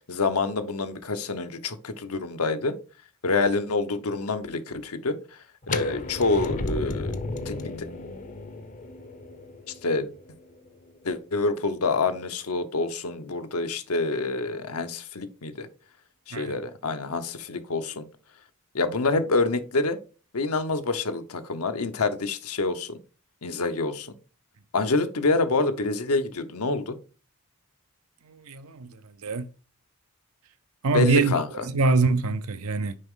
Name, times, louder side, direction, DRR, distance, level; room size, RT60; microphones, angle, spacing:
voice 1, 0.1-2.8 3.2-5.2 5.7-7.1 7.5-7.7 9.8-10.1 11.0-15.7 16.3-18.1 18.7-20.0 20.3-23.0 23.4-24.1 24.7-27.0 30.9-31.5, left 3 dB, 70° left, 0.9 m, -27 dB
sound 1, 5.6-11.5, left 2 dB, 35° left, 0.7 m, -34 dB
voice 2, 28.3-29.5 30.8-31.3 31.6-32.9, right 3 dB, 70° right, 0.6 m, -24 dB
6.6 x 4.9 x 3.7 m
head